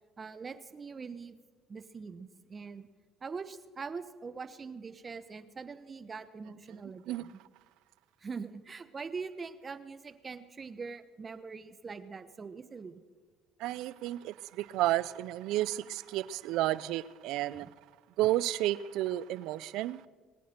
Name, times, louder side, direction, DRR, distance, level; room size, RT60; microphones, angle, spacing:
voice 1, 0.2-1.4 1.7-2.9 3.2-7.4 8.2-13.0, right 5 dB, 35° right, 12 dB, 1.1 m, -43 dB
voice 2, 13.6-17.7 18.2-20.0, right 15 dB, 75° right, 19 dB, 0.5 m, -31 dB
21.5 x 9.3 x 6.6 m, 1.4 s
supercardioid pair, 75°, 0 cm